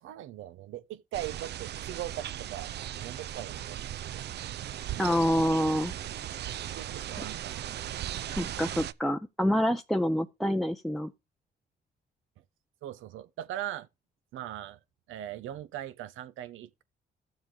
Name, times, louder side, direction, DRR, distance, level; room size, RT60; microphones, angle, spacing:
voice 1, 0.0-2.7 3.0-3.8 4.0-4.2 6.8-7.8 12.8-13.9 14.3-14.8 15.1-16.8, right 12 dB, 85° right, 0.8 m, -40 dB
sound 1, 1.1-8.9, right 11 dB, 60° right, 0.5 m, -37 dB
voice 2, 5.0-5.9 8.3-11.1, equal, ahead, 0.5 m, -27 dB
13.0 x 7.2 x 3.8 m
cardioid pair, 90°, 20 cm